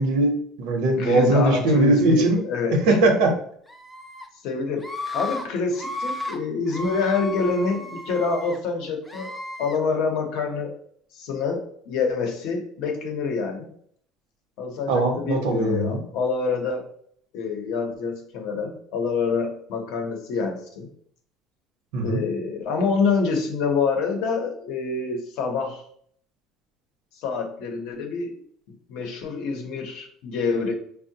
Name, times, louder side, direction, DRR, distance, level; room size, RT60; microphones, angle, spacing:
voice 1, 0.0-2.4 2.9-3.3 14.9-16.0 21.9-22.2, right 2 dB, 85° right, 3 dB, 0.7 m, -20 dB
voice 2, 0.9-3.0 4.4-4.8 5.1-9.3 9.6-10.7 11.1-13.7 14.6-16.9 17.3-20.9 22.0-25.8 27.1-28.4 28.9-30.7, left 4 dB, 65° left, 3 dB, 0.7 m, -26 dB
Screaming, 3.7-4.3 4.8-5.4 5.7-6.4 6.7-8.6 9.1-9.8, left 2 dB, 5° left, 0.3 m, -34 dB
3.7 x 2.0 x 2.7 m, 0.62 s
cardioid pair, 165°, 0 cm